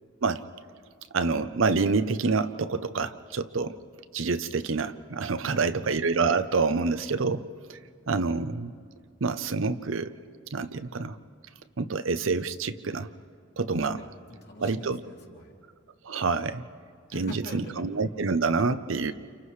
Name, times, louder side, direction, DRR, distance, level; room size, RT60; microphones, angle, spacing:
voice 1, 1.1-3.8 4.1-7.4 7.7-7.8 8.1-8.7 9.2-10.1 10.5-11.2 11.8-13.1 13.6-14.0 14.6-15.0 16.0-16.6 17.1-19.1, right 4 dB, 85° right, 11 dB, 0.7 m, -27 dB
voice 2, 5.4-5.9 13.9-15.5 17.1-17.9, left 1 dB, 55° left, -2 dB, 2.8 m, -44 dB
29.5 x 29.0 x 3.2 m, 2.1 s
head